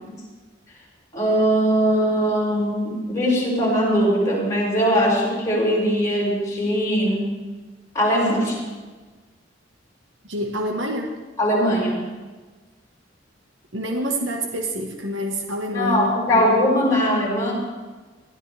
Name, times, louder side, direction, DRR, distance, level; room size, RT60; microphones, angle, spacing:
voice 1, 1.1-7.4 7.9-8.7 11.4-12.1 15.7-17.5, equal, 20° left, -5 dB, 6.2 m, -20 dB
voice 2, 10.3-11.2 13.7-16.4, equal, 80° right, 2 dB, 1.6 m, -27 dB
21.0 x 13.5 x 3.5 m, 1.3 s
head